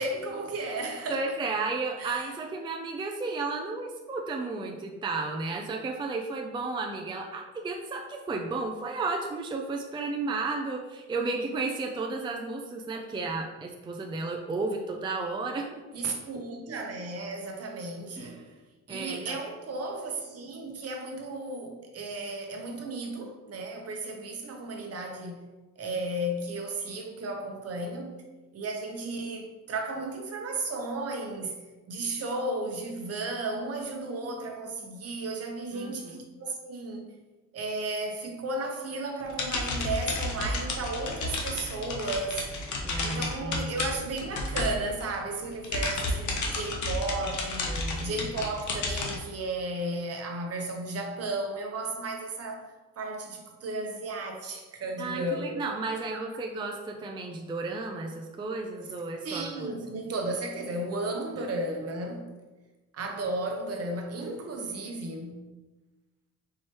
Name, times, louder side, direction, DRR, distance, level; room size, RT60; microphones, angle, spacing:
voice 1, 0.0-1.2 2.0-2.3 15.9-18.4 18.9-25.4 25.8-28.2 28.5-31.6 31.9-37.1 37.5-42.5 43.0-52.7 53.0-55.6 56.1-56.2 59.2-62.3 62.9-65.5, right 2 dB, 55° right, 0.8 m, -34 dB
voice 2, 1.1-15.7 18.2-18.3 18.9-19.4 35.7-36.2 42.8-43.7 47.7-48.2 55.0-59.7 61.4-61.5, right 3 dB, 15° right, 0.4 m, -33 dB
sound 1, 39.2-45.2 45.5-49.2, left 2 dB, 70° left, 0.9 m, -32 dB
4.6 x 3.0 x 2.9 m
cardioid pair, 90°, 30 cm